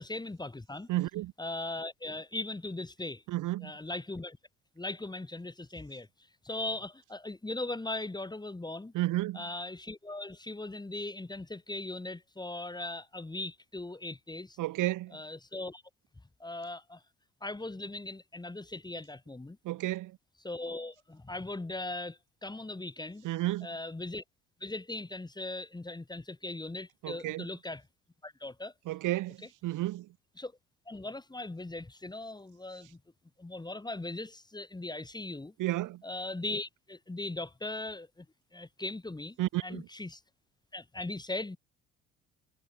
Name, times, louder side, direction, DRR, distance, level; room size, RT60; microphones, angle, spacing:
voice 1, 0.0-0.9 1.4-3.2 3.6-4.4 4.8-6.1 6.4-8.9 9.3-14.6 15.1-15.8 16.4-17.0 17.4-19.6 20.4-23.3 23.6-24.2 24.6-27.8 28.2-28.7 30.4-30.5 30.9-33.0 33.4-35.5 36.0-38.3 38.5-39.4 39.6-40.2 40.7-41.6, left 2 dB, 10° left, 2.3 m, -39 dB
voice 2, 0.9-1.3 3.3-3.7 8.9-9.4 14.6-15.2 19.6-20.2 23.2-23.7 27.0-27.5 28.9-30.1 35.6-36.0 39.4-39.9, right 16 dB, 50° right, 2.0 m, -32 dB
figure-of-eight pair, 55°, 40 cm